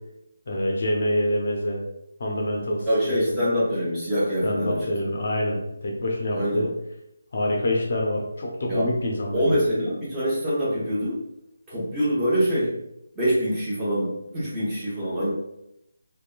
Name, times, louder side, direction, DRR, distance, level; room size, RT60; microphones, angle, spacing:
voice 1, 0.5-1.8 2.2-2.9 3.3-3.4 4.4-6.7 7.3-9.6, left 1 dB, 50° left, -1 dB, 0.5 m, -26 dB
voice 2, 2.9-4.8 6.3-6.7 8.7-8.9 9.3-11.2 11.7-12.7 13.2-15.3, equal, 10° right, -10 dB, 0.9 m, -24 dB
2.7 x 2.2 x 2.3 m, 0.84 s
figure-of-eight pair, 150°, 0 cm